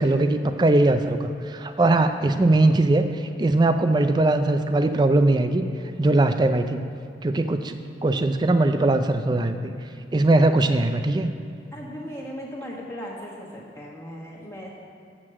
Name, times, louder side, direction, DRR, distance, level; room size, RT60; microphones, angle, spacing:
voice 1, 0.0-5.7 6.0-6.8 7.2-9.7 10.1-11.3, right 2 dB, 25° right, 9 dB, 0.4 m, -20 dB
voice 2, 11.7-14.7, equal, 15° left, -3 dB, 1.4 m, -37 dB
7.5 x 6.2 x 7.6 m, 2.5 s
head